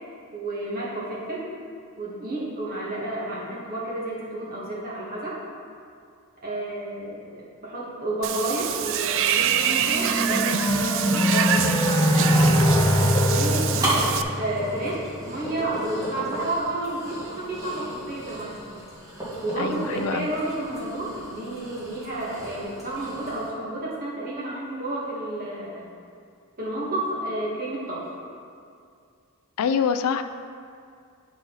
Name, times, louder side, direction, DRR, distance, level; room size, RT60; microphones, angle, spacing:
voice 1, 0.3-1.5 2.0-5.4 6.4-12.4 13.2-14.1 14.4-18.7 19.4-25.9 26.6-28.1, right 1 dB, 45° right, -6 dB, 1.8 m, -31 dB
Water / Bathtub (filling or washing), 8.2-14.2, right 9 dB, 60° right, 0.3 m, -26 dB
sound 1, 9.5-15.1, left 1 dB, 15° left, 0.4 m, -23 dB
sound 2, 12.1-23.5, right 1 dB, 15° right, 1.7 m, -34 dB
voice 2, 19.6-20.3 29.6-30.2, left 7 dB, 80° left, 10 dB, 0.4 m, -25 dB
9.8 x 4.1 x 4.0 m, 2.3 s
head